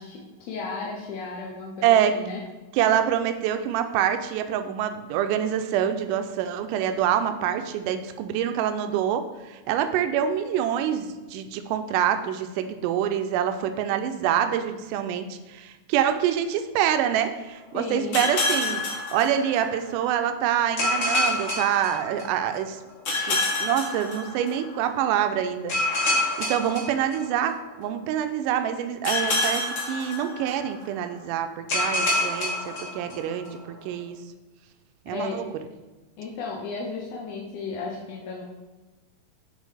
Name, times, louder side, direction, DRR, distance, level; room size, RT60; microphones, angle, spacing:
voice 1, 0.0-2.4 17.7-18.3 35.1-35.4 36.2-38.4, left 4 dB, 70° left, -2 dB, 1.6 m, -34 dB
voice 2, 1.8-2.1 2.7-22.8 23.3-34.2 35.1-35.4, right 9 dB, 80° right, 8 dB, 2.1 m, -26 dB
sound 1, 18.1-19.9 20.8-22.5 23.1-24.8 25.7-27.7 29.0-30.8 31.7-33.5, left 2 dB, 45° left, 1.9 m, -27 dB
8.3 x 3.7 x 4.9 m, 1.2 s
omnidirectional pair, 3.9 m